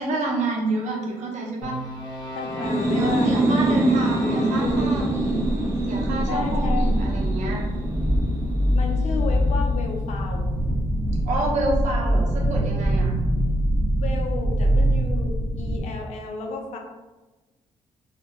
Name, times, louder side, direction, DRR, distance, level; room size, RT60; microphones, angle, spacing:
voice 1, 0.0-1.8 2.9-5.5 5.9-7.6 11.2-13.1, right 2 dB, 75° right, -2 dB, 0.6 m, -28 dB
sound 1, 1.6-7.8, equal, 35° left, 0.9 m, -36 dB
voice 2, 2.3-4.9 6.3-6.9 8.7-10.6 14.0-16.8, left 4 dB, 70° left, 3 dB, 0.4 m, -32 dB
sound 2, 2.5-10.0, right 2 dB, 30° right, 0.5 m, -25 dB
sound 3, 4.6-15.8, equal, 5° right, 1.1 m, -24 dB
2.1 x 2.1 x 2.9 m, 1.1 s
cardioid pair, 130°, 12 cm